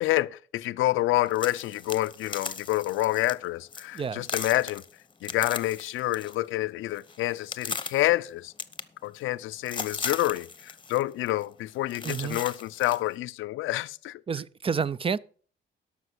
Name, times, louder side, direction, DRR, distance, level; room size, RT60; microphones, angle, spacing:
voice 1, 0.0-4.8 5.2-8.5 9.0-14.2, left 16 dB, 85° left, 0.5 m, -28 dB
sound 1, 1.3-3.3 3.7-4.0 4.2-6.4 6.7-8.1 8.6-9.4 9.7-11.0 11.3-11.5 11.9-13.0, left 5 dB, 25° left, 0.9 m, -37 dB
voice 2, 3.9-4.3 12.0-12.4 14.3-15.2, right 6 dB, 25° right, 0.5 m, -29 dB
12.5 x 5.9 x 6.2 m
cardioid pair, 90°, 20 cm